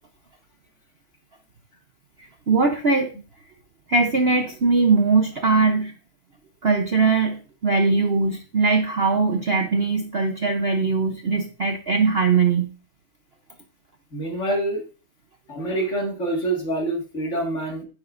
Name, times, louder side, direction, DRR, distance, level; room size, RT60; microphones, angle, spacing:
voice 1, 2.2-3.1 3.9-5.9 6.6-12.7, right 4 dB, 80° right, 5 dB, 0.5 m, -21 dB
voice 2, 14.1-14.8 15.5-17.8, right 1 dB, 35° left, 1 dB, 2.2 m, -26 dB
10.0 x 9.6 x 2.5 m, 0.35 s
omnidirectional pair, 2.2 m